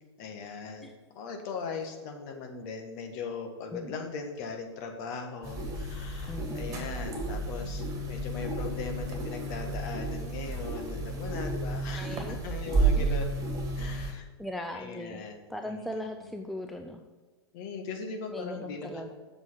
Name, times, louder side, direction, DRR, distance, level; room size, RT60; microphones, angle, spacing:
voice 1, 0.2-0.9 1.1-13.3 13.7-14.3 14.7-16.3 17.5-19.1, left 4 dB, 40° left, 4 dB, 1.5 m, -39 dB
sound 1, 5.4-14.1, right 2 dB, 25° right, 2.3 m, -32 dB
voice 2, 6.3-6.9 11.9-12.4 13.0-13.1 14.4-17.0 18.3-19.1, left 1 dB, ahead, 4 dB, 0.4 m, -39 dB
7.9 x 6.8 x 6.0 m, 1.4 s
figure-of-eight pair, 105°, 14 cm